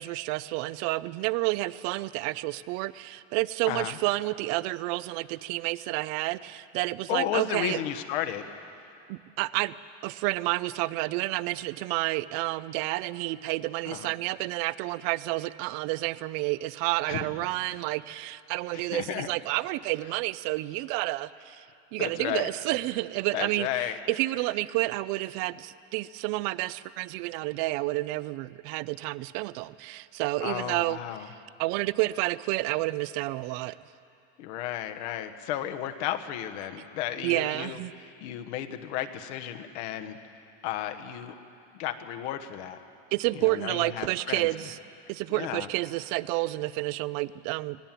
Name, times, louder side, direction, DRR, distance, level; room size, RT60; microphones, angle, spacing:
voice 1, 0.0-7.8 9.1-9.7 10.0-21.7 21.9-31.3 31.6-33.8 37.2-37.9 43.1-44.8 45.1-47.8, right 19 dB, 50° right, 18 dB, 0.5 m, -30 dB
voice 2, 3.7-4.0 7.1-8.5 13.8-14.1 17.1-17.3 17.7-17.8 18.7-19.3 22.0-22.5 23.3-24.0 30.4-31.3 34.4-40.2 40.6-41.4 41.8-42.8 43.3-44.5 45.3-45.7, left 11 dB, 80° left, 7 dB, 1.4 m, -33 dB
18.0 x 18.0 x 9.1 m, 2.6 s
cardioid pair, 175°, 33 cm